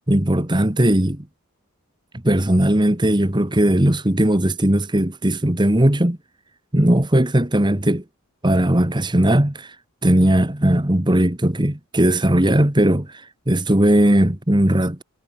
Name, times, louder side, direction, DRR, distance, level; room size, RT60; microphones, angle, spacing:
voice 1, 0.1-1.2 2.2-6.2 6.7-8.0 8.4-9.7 10.0-15.0, right 1 dB, 20° right, 1.6 m, -18 dB
head